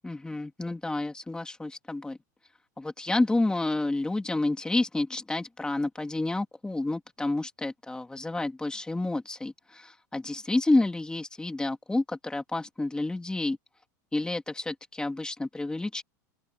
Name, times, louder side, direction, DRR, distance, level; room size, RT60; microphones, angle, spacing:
voice 1, 0.0-2.2 2.8-13.6 14.1-16.0, left 2 dB, 10° left, 2.6 m, -29 dB
open air
supercardioid pair, 115°, 10 cm